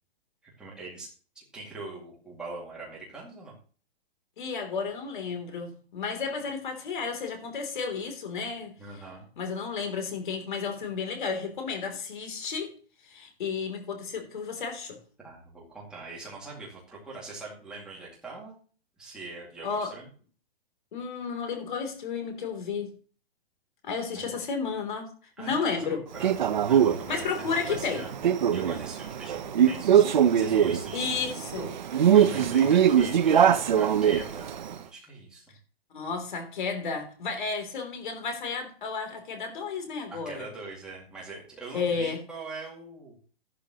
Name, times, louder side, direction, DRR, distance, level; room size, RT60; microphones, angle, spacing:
voice 1, 0.6-1.1 1.4-3.5 8.8-9.3 15.2-18.6 19.0-20.1 24.1-24.2 25.4-26.4 26.6-28.1 28.5-34.5 34.9-35.4 40.1-43.2, right 3 dB, ahead, -6 dB, 2.3 m, -42 dB
voice 2, 4.4-8.7 9.4-12.7 13.0-15.0 19.6-19.9 20.9-22.9 23.8-25.1 25.4-26.0 27.1-28.1 30.9-31.7 35.9-40.4 41.7-42.2, left 5 dB, 50° left, 5 dB, 3.3 m, -32 dB
Male speech man speaking, 26.2-34.7, right 9 dB, 45° right, 0.9 m, -23 dB
13.0 x 12.0 x 3.0 m, 0.40 s
hypercardioid pair, 180°, 31 cm